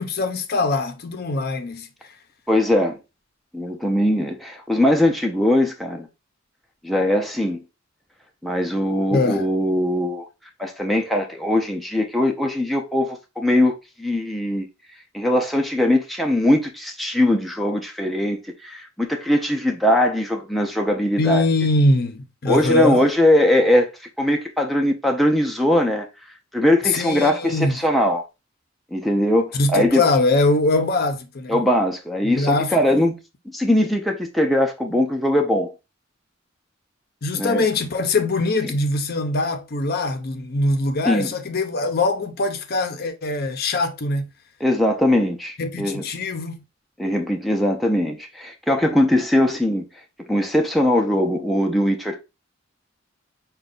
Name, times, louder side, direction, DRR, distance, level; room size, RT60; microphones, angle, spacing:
voice 1, 0.0-1.9 9.1-9.5 21.2-23.1 26.8-27.8 29.5-31.6 32.2-33.0 37.2-44.3 45.6-46.6, left 2 dB, 50° left, 0.6 m, -22 dB
voice 2, 2.5-3.0 3.5-6.1 6.8-7.6 8.4-10.3 10.6-14.7 15.1-21.4 22.5-23.9 24.2-26.1 26.5-28.3 28.9-30.0 31.5-33.2 33.5-35.7 37.3-37.6 41.1-41.3 44.6-46.0 47.0-49.9 50.2-52.2, left 1 dB, ahead, 0.5 m, -20 dB
5.1 x 2.3 x 3.7 m
head